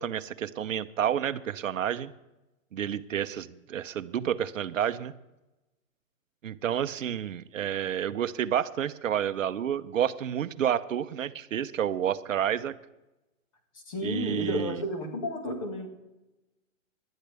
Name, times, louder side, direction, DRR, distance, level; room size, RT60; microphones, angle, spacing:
voice 1, 0.0-2.1 2.7-5.1 6.4-12.8 14.0-14.8, right 9 dB, 70° right, 13 dB, 0.8 m, -30 dB
voice 2, 13.9-15.9, left 1 dB, 25° left, 4 dB, 1.8 m, -32 dB
19.0 x 12.0 x 3.4 m, 0.98 s
hypercardioid pair, 175°, 40 cm